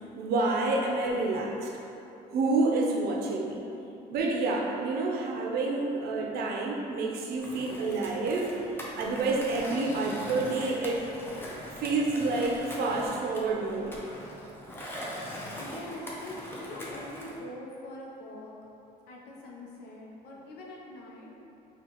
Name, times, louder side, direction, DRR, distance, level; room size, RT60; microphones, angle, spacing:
voice 1, 0.2-1.7 2.3-3.7 4.1-8.5 9.0-11.0 11.8-13.9, right 3 dB, 70° right, 0 dB, 0.5 m, -28 dB
Skateboard, 7.4-17.4, equal, 15° left, 0.6 m, -41 dB
voice 2, 15.6-18.5 19.1-21.3, left 1 dB, 75° left, -3 dB, 0.7 m, -43 dB
4.4 x 2.4 x 2.8 m, 2.9 s
cardioid pair, 110°, 17 cm